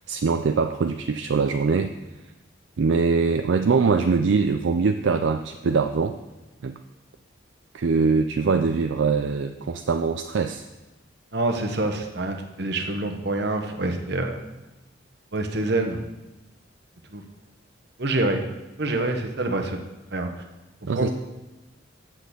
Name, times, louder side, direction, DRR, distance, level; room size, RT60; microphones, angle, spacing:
voice 1, 0.1-1.9 2.8-6.2 6.6-6.8 7.7-10.6 20.9-21.1, right 4 dB, 70° right, 7 dB, 0.4 m, -22 dB
voice 2, 11.3-14.4 15.3-16.0 17.1-17.2 18.0-18.4 18.8-19.8 20.1-20.3 20.9-21.1, right 2 dB, 55° right, 5 dB, 1.0 m, -26 dB
7.6 x 6.3 x 6.8 m, 1.1 s
head